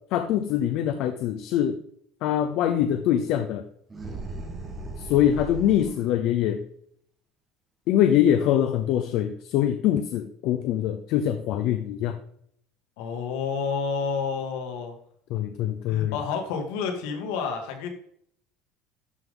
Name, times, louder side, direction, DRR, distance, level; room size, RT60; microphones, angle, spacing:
voice 1, 0.1-1.8 2.2-3.6 5.0-6.6 7.9-12.2 15.3-16.2, left 10 dB, 50° left, 8 dB, 0.6 m, -23 dB
sound 1, 3.9-6.1, right 2 dB, 15° right, 1.4 m, -37 dB
voice 2, 13.0-14.9 15.9-17.9, left 5 dB, 85° left, 3 dB, 2.0 m, -30 dB
12.0 x 5.3 x 3.8 m, 0.67 s
cardioid pair, 175°, 0 cm